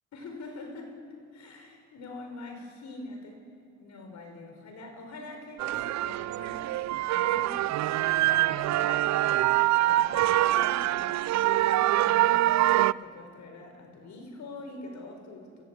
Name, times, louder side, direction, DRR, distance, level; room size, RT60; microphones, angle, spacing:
voice 1, 0.1-0.9 1.3-3.4 3.8-11.2 11.7-15.6, left 2 dB, 65° left, 4 dB, 4.5 m, -44 dB
sound 1, 5.6-12.9, right 15 dB, 65° right, 0.4 m, -25 dB
24.0 x 15.0 x 8.2 m, 2.6 s
cardioid pair, 90°, 30 cm